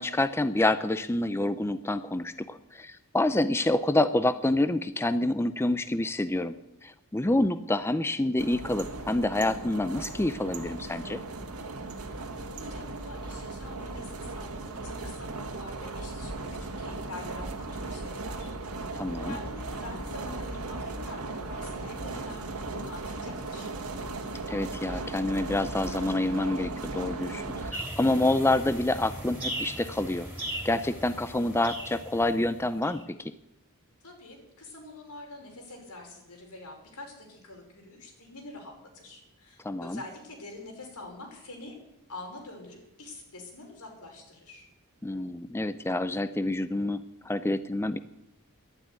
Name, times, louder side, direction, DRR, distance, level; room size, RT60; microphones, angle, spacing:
voice 1, 0.0-6.6 6.8-11.2 18.9-19.4 24.5-30.3 30.6-33.3 39.6-40.0 45.0-48.0, left 2 dB, 10° left, 12 dB, 0.5 m, -27 dB
sound 1, 8.4-27.7, right 2 dB, 85° right, 1.9 m, -37 dB
voice 2, 12.4-18.5 18.8-18.9 19.2-23.7 34.0-41.7 42.1-44.7, left 2 dB, 90° left, 1 dB, 5.4 m, -45 dB
sound 2, 27.7-33.0, right 1 dB, 10° right, 3.3 m, -38 dB
12.0 x 11.5 x 9.5 m, 0.89 s
head